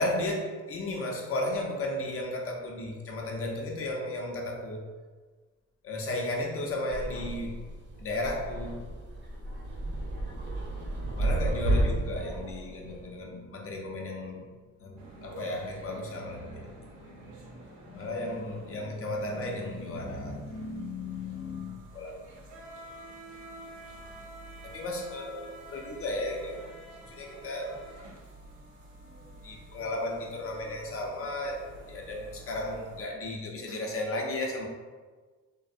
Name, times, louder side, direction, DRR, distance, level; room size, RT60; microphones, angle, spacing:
voice 1, 0.0-4.9 5.8-7.6 8.0-8.8 11.2-14.5 14.8-22.1 24.6-25.4 25.7-26.6 27.0-27.7 29.4-34.6, left 1 dB, 45° left, 1 dB, 0.6 m, -34 dB
sound 1, 6.9-13.0, right 1 dB, 40° right, 0.7 m, -32 dB
sound 2, 15.0-33.1, right 1 dB, 75° right, 0.6 m, -49 dB
3.2 x 2.0 x 2.5 m, 1.4 s
cardioid pair, 90°, 30 cm